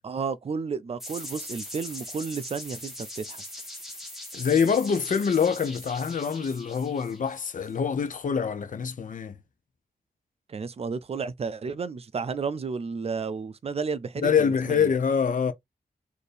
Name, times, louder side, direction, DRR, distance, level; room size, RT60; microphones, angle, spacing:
voice 1, 0.0-3.4 10.5-14.9, right 5 dB, 40° right, 0.4 m, -32 dB
sound 1, 1.0-7.7, left 1 dB, ahead, 1.7 m, -41 dB
voice 2, 4.3-9.4 14.2-15.5, left 6 dB, 50° left, 0.6 m, -25 dB
4.2 x 2.6 x 3.3 m
wide cardioid pair, 175°, 17 cm